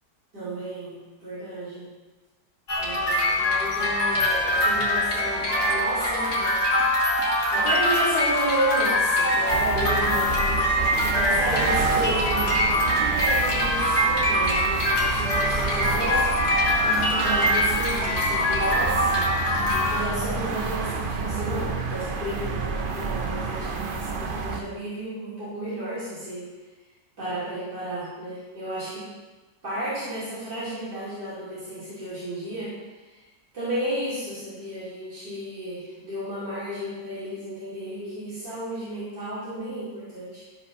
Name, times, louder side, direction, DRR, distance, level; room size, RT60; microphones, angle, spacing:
voice 1, 0.3-1.9 2.8-6.6 7.5-16.3 16.8-19.1 19.9-26.5 27.2-29.0 29.6-32.7 33.1-33.3 33.5-40.4, right 1 dB, 75° right, -13 dB, 5.2 m, -32 dB
sound 1, 2.7-20.0, left 1 dB, 65° left, 2.8 m, -23 dB
sound 2, 9.5-24.6, right 4 dB, 40° right, 0.8 m, -30 dB
15.5 x 5.4 x 5.6 m, 1.2 s
omnidirectional pair, 1.8 m